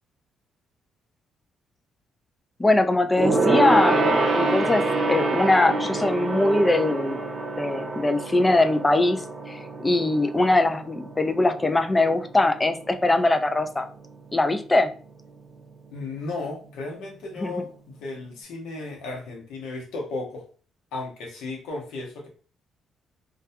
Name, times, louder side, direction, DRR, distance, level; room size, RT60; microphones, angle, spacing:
voice 1, 2.6-7.2 7.6-13.9 14.3-14.9 17.4-17.6, left 2 dB, 20° left, 8 dB, 0.3 m, -22 dB
Gong, 3.2-12.9 13.2-13.5 13.8-13.9, right 2 dB, 40° right, 0.6 m, -26 dB
voice 2, 15.9-20.5 20.9-22.3, left 3 dB, 90° left, 0 dB, 0.8 m, -34 dB
2.3 x 2.2 x 2.6 m, 0.39 s
cardioid pair, 90°, 0 cm